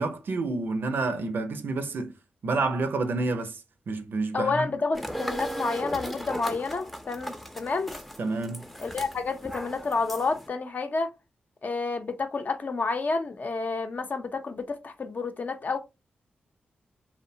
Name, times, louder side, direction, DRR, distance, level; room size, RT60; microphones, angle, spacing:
voice 1, 0.0-2.1 2.4-3.6 3.9-4.7 8.2-8.6, right 3 dB, 65° right, 0.5 m, -29 dB
voice 2, 4.3-7.9 8.8-11.1 11.6-15.8, left 4 dB, 50° left, 0.5 m, -30 dB
sound 1, 4.9-10.5, equal, 5° left, 0.5 m, -37 dB
2.6 x 2.1 x 2.6 m
cardioid pair, 50°, 4 cm